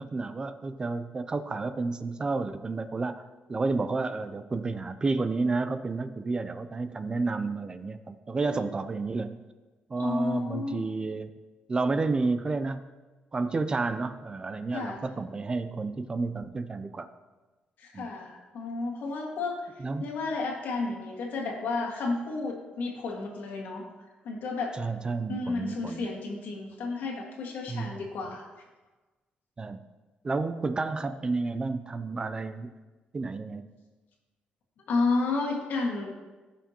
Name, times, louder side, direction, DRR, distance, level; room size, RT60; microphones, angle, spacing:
voice 1, 0.0-3.2 3.5-9.3 9.9-11.3 11.7-12.9 13.3-17.1 17.9-18.1 19.8-20.1 24.8-26.1 27.7-28.1 29.6-29.8 30.2-32.7 33.1-33.7, right 3 dB, 25° right, 11 dB, 0.4 m, -31 dB
voice 2, 10.0-10.8 14.7-15.0 17.8-19.7 20.0-23.9 24.2-24.8 25.3-28.6 34.9-36.1, left 3 dB, 75° left, 0 dB, 1.7 m, -32 dB
15.5 x 5.8 x 2.9 m, 1.2 s
cardioid pair, 130°, 3 cm